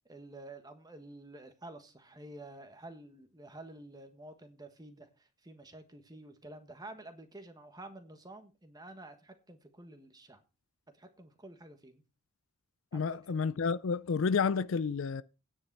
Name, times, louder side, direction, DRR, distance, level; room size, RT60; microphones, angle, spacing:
voice 1, 0.0-10.4 10.9-12.0 12.9-13.2, right 2 dB, 15° right, 1.4 m, -50 dB
voice 2, 12.9-15.2, left 5 dB, 60° left, 0.4 m, -30 dB
9.7 x 8.7 x 4.6 m
head